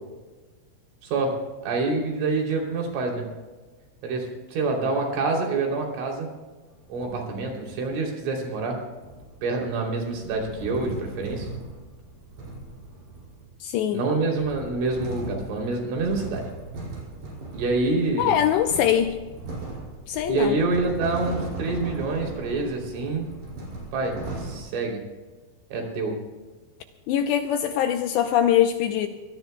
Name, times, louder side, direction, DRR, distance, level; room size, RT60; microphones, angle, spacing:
voice 1, 1.0-3.3 4.0-6.3 6.9-8.8 9.4-11.5 13.9-16.5 17.5-18.4 20.3-23.3 23.9-25.0 25.7-26.2, right 3 dB, 80° right, 0 dB, 5.7 m, -27 dB
sound 1, 6.7-8.0 9.0-13.6 14.1-24.6, right 2 dB, 60° right, 7.7 m, -38 dB
voice 2, 13.6-14.0 18.2-19.1 20.1-20.6 27.1-29.1, left 10 dB, 80° left, 6 dB, 2.6 m, -22 dB
25.0 x 17.5 x 2.3 m, 1.3 s
omnidirectional pair, 5.5 m